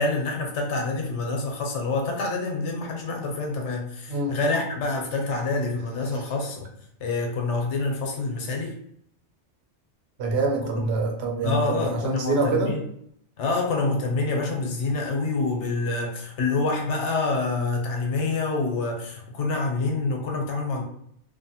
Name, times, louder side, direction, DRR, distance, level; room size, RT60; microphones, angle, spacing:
voice 1, 0.0-6.7 7.0-8.7 11.4-12.8 13.4-20.8, left 3 dB, 90° left, 2 dB, 1.0 m, -27 dB
voice 2, 10.2-12.7, right 3 dB, 70° right, 1 dB, 0.9 m, -25 dB
2.7 x 2.5 x 2.8 m, 0.69 s
omnidirectional pair, 1.2 m